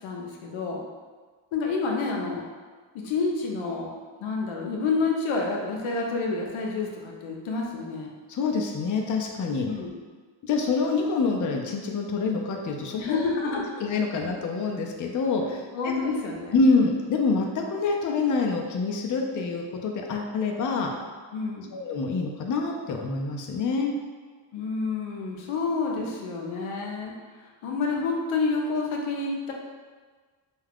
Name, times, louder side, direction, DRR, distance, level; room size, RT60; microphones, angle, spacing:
voice 1, 0.0-0.8 1.5-2.4 2.9-3.9 4.2-8.1 9.6-9.9 13.0-13.6 14.1-14.3 15.7-16.5 21.3-21.8 24.5-27.1 27.6-29.5, left 4 dB, 90° left, -1 dB, 0.6 m, -29 dB
voice 2, 8.3-9.7 10.4-13.2 13.8-15.9 16.5-20.9 21.7-23.9, left 4 dB, 40° left, 1 dB, 0.5 m, -26 dB
2.4 x 2.3 x 3.4 m, 1.5 s
cardioid pair, 70°, 47 cm